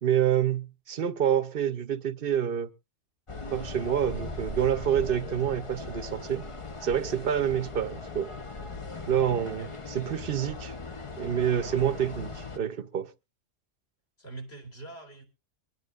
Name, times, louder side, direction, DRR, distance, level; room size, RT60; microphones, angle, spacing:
voice 1, 0.0-2.7 3.5-6.4 6.8-8.3 9.1-10.7 11.2-13.1, right 9 dB, 50° right, 1.0 m, -27 dB
sound 1, 3.3-12.6, left 3 dB, 30° left, 0.8 m, -39 dB
voice 2, 9.5-9.8 14.2-15.2, right 2 dB, 55° left, 3.6 m, -44 dB
24.0 x 9.5 x 2.5 m
omnidirectional pair, 1.3 m